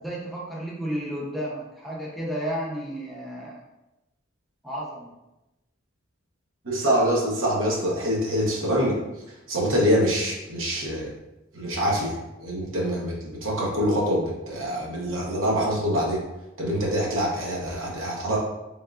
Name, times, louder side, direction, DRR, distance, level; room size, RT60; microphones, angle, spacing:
voice 1, 0.0-3.6 4.6-5.1, equal, ahead, -5 dB, 0.6 m, -32 dB
voice 2, 6.6-9.0 9.5-11.1 11.5-12.1 12.4-16.2 16.6-18.4, equal, 85° right, -3 dB, 1.0 m, -25 dB
3.5 x 3.4 x 2.4 m, 0.97 s
head